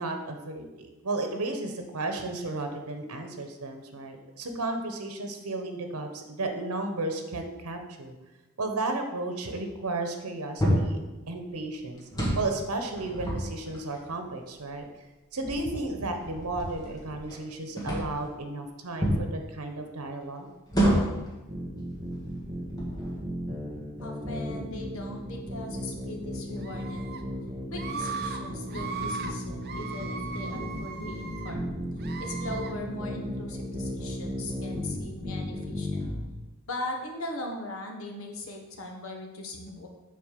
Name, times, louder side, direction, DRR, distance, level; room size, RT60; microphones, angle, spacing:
voice 1, 0.0-8.1 8.6-11.0 11.3-12.0 12.4-14.9 15.3-20.5, right 2 dB, 90° right, 5 dB, 1.1 m, -33 dB
sound 1, 10.6-11.0 12.0-12.5 13.0-14.0 14.8-14.9 15.4-17.4 17.8-18.2 19.0-19.3 20.7-21.3 22.0-22.2 22.6-23.2, equal, 15° left, 1.6 m, -28 dB
sound 2, 21.5-36.2, equal, 10° right, 1.7 m, -35 dB
voice 2, 24.0-27.1 27.7-31.6 32.2-36.1 36.7-39.9, left 1 dB, 65° left, 2 dB, 1.3 m, -39 dB
Screaming, 26.6-27.2 27.7-28.4 28.7-29.3 29.6-31.5 32.0-32.7, right 5 dB, 45° right, 0.7 m, -38 dB
6.9 x 4.2 x 6.7 m, 1.1 s
head